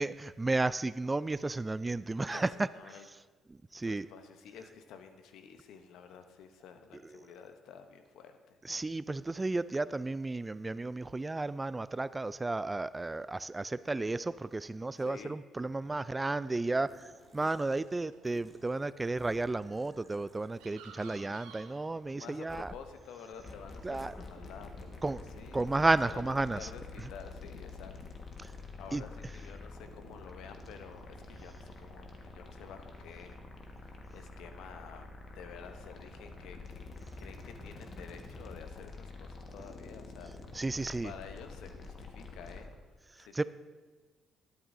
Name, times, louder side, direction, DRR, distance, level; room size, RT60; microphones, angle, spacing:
voice 1, 0.0-2.7 3.5-4.1 7.0-7.1 8.6-22.7 23.8-24.1 25.0-25.2 25.5-26.7 27.0-27.1 28.4-28.5 28.9-29.0 40.5-41.1 43.1-43.4, right 2 dB, 25° right, 17 dB, 0.3 m, -33 dB
voice 2, 2.7-3.1 3.8-8.6 14.9-15.4 22.1-24.9 25.3-25.6 26.0-26.8 27.1-33.4 33.7-36.8 37.2-40.6 41.0-42.7 43.2-43.4, left 7 dB, 75° left, 7 dB, 0.8 m, -50 dB
sound 1, 15.7-26.7, right 6 dB, 80° right, 0.9 m, -59 dB
sound 2, 16.9-18.0 18.2-21.0 21.3-21.4 22.5-22.9 24.0-24.1, left 1 dB, 15° left, 1.7 m, -57 dB
sound 3, 23.3-42.7, left 3 dB, 50° left, 1.5 m, -47 dB
12.5 x 11.5 x 2.7 m, 1.3 s
hypercardioid pair, 50°, 0 cm